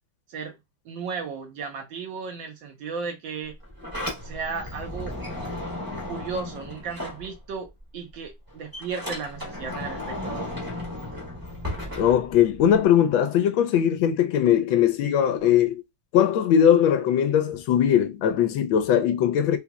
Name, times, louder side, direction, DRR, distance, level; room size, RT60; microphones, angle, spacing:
voice 1, 0.8-3.5 4.2-5.2 6.1-10.5, right 5 dB, 75° right, 1.7 m, -35 dB
Sliding door, 3.5-7.8 8.1-12.8, left 1 dB, 15° right, 0.8 m, -35 dB
voice 2, 12.0-15.8 16.1-19.6, left 9 dB, 85° left, 1.4 m, -20 dB
3.9 x 2.9 x 2.3 m
omnidirectional pair, 2.1 m